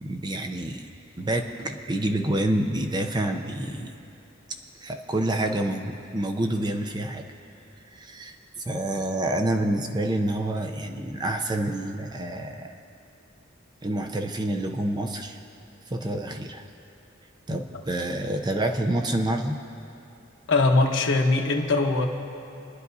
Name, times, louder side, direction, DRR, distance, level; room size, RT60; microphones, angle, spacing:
voice 1, 0.0-0.9 1.2-3.9 4.8-7.3 7.9-12.8 13.8-15.4 15.9-16.6 17.5-19.6, right 1 dB, 20° right, 5 dB, 0.6 m, -28 dB
voice 2, 20.5-22.1, left 3 dB, 65° left, 2 dB, 1.1 m, -21 dB
29.0 x 10.5 x 2.7 m, 2.9 s
head